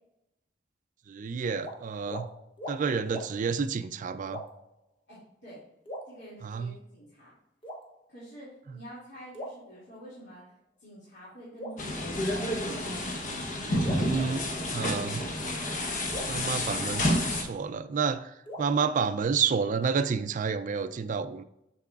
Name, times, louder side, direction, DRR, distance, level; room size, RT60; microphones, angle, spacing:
voice 1, 1.1-2.3 2.7-4.4 6.4-6.7 8.7-8.8 13.7-14.4 14.7-15.2 16.3-21.4, right 5 dB, 45° right, 12 dB, 0.4 m, -30 dB
sound 1, 1.6-1.8 2.1-2.3 2.6-2.8 3.1-3.3 4.3-4.7 5.9-6.7 7.6-8.3 9.3-10.3 11.6-12.7 13.8-15.0 16.1-17.5 18.5-19.7, equal, 30° left, 1.2 m, -43 dB
voice 2, 5.1-5.6 6.1-7.3 8.1-10.4 10.8-12.5, right 1 dB, 70° left, -10 dB, 2.5 m, -48 dB
sound 2, 11.8-17.4, left 1 dB, 45° left, 1.0 m, -30 dB
7.0 x 6.7 x 2.4 m, 0.82 s
head